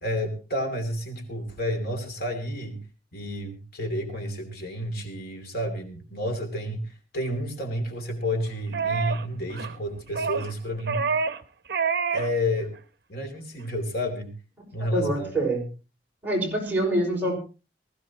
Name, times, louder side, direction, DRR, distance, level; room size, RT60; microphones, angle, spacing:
voice 1, 0.0-2.8 3.1-6.9 7.1-11.2 12.1-12.7 13.1-14.3 14.7-15.3, equal, 60° left, 4 dB, 2.9 m, -30 dB
sound 1, 8.7-9.2 9.5-9.8 10.1-10.5 10.9-11.4 11.7-12.3 12.6-12.8, right 5 dB, 60° right, 0.9 m, -27 dB
voice 2, 14.8-15.7 16.2-17.4, right 1 dB, 10° right, -2 dB, 5.5 m, -25 dB
20.0 x 15.5 x 3.0 m, 0.33 s
head